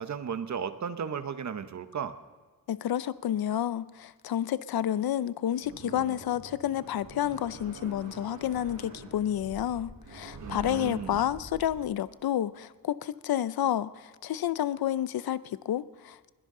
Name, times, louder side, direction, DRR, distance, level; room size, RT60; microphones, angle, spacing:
voice 1, 0.0-2.2 10.4-11.3, right 7 dB, 50° right, 10 dB, 0.9 m, -35 dB
voice 2, 2.7-16.3, left 11 dB, 85° left, 16 dB, 0.6 m, -30 dB
sound 1, 5.6-11.8, right 2 dB, 85° right, 5.7 m, -45 dB
21.5 x 17.0 x 3.8 m, 1.4 s
wide cardioid pair, 175°, 35 cm